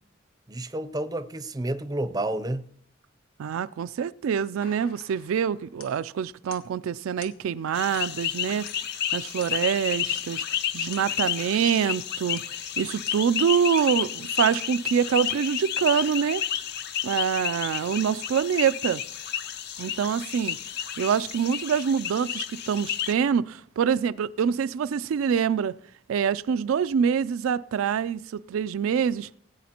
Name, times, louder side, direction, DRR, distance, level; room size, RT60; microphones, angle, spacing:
voice 1, 0.5-2.7, right 1 dB, 20° right, 0.5 m, -30 dB
voice 2, 3.4-8.7 9.1-10.4 10.7-12.4 12.8-16.4 17.0-19.0 19.8-20.6 21.0-25.8 26.1-29.3, right 7 dB, 85° right, 0.3 m, -25 dB
Clapping, 4.6-6.4, left 4 dB, 70° left, 3.6 m, -54 dB
sound 1, 5.0-5.2 5.8-6.1 6.5-6.7 7.2-7.4 7.9-8.3 8.6-9.0 9.4-9.7 10.2-10.4 10.9-11.1 11.7-11.8 12.3-12.5 13.0-13.3 13.8-14.0 14.5-14.7 15.3-15.5 16.1-16.2, left 7 dB, 85° left, 1.7 m, -48 dB
sound 2, 7.7-23.1, left 9 dB, 50° left, 0.6 m, -31 dB
19.5 x 9.2 x 2.9 m
head